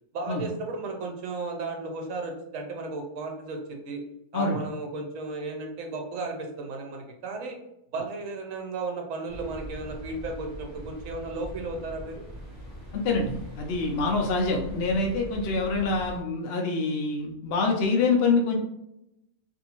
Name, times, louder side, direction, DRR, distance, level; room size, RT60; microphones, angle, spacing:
voice 1, 0.1-4.0 4.3-7.6 7.9-12.2, right 3 dB, 70° right, 3 dB, 1.0 m, -34 dB
sound 1, 9.3-16.2, equal, 40° left, 1.0 m, -42 dB
voice 2, 12.9-18.6, left 3 dB, 65° left, 1 dB, 0.6 m, -25 dB
2.6 x 2.6 x 2.9 m, 0.83 s
omnidirectional pair, 1.5 m